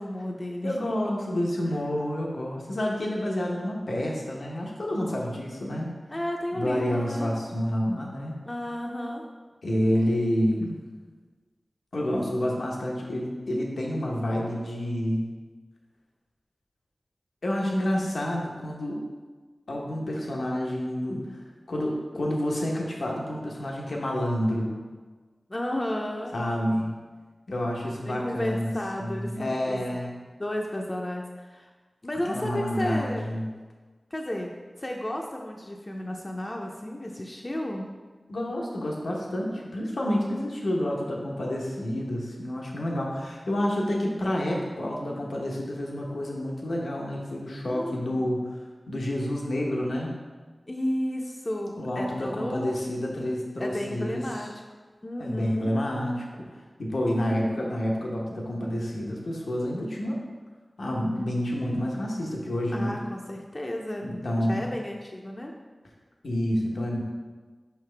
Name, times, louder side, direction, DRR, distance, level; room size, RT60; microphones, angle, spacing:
voice 1, 0.0-0.8 1.6-1.7 6.1-7.3 8.5-9.2 20.4-20.8 25.5-26.3 28.0-29.9 30.4-31.7 32.0-33.4 34.1-34.5 34.8-38.0 45.0-45.3 47.6-48.2 50.7-53.1 53.6-54.5 55.0-55.7 57.1-57.4 62.7-65.5, left 1 dB, 35° left, 0 dB, 0.5 m, -33 dB
voice 2, 0.6-6.0 6.5-8.4 9.6-10.8 11.9-15.3 17.4-19.0 19.7-21.4 21.7-24.7 26.3-26.9 27.5-28.7 29.0-30.1 32.2-33.5 38.3-48.4 48.9-50.1 51.8-54.2 55.2-56.3 56.8-60.2 60.8-62.9 64.0-64.6 66.2-67.0, equal, 90° left, -2 dB, 0.9 m, -29 dB
5.7 x 5.3 x 3.3 m, 1.4 s
wide cardioid pair, 55°, 0 cm